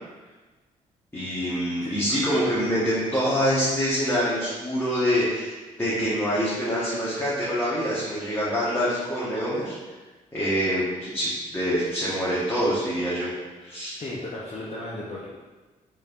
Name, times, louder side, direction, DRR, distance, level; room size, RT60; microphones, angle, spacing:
voice 1, 1.1-9.7 10.3-13.3 13.6-14.0, equal, 15° left, -9 dB, 1.3 m, -25 dB
voice 2, 14.0-15.3, left 2 dB, 35° left, -6 dB, 0.8 m, -35 dB
4.3 x 3.3 x 2.5 m, 1.3 s
hypercardioid pair, 45°, 18 cm